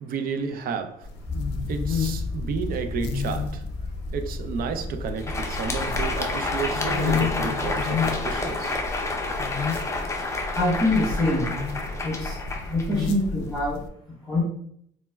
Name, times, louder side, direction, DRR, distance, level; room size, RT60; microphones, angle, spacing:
voice 1, 0.0-1.1 1.7-3.6 4.1-8.8, right 6 dB, 60° right, 0.4 m, -31 dB
sound 1, 1.0-13.9, left 5 dB, 90° left, 0.4 m, -32 dB
sound 2, 1.3-13.2, left 2 dB, 30° right, 1.0 m, -37 dB
Crowd, 5.0-13.5, left 2 dB, 15° left, 0.5 m, -30 dB
voice 2, 10.5-11.5 12.0-12.4 12.7-13.8 14.3-14.4, left 1 dB, ahead, 1.0 m, -24 dB
4.0 x 2.1 x 2.2 m
cardioid pair, 110°, 17 cm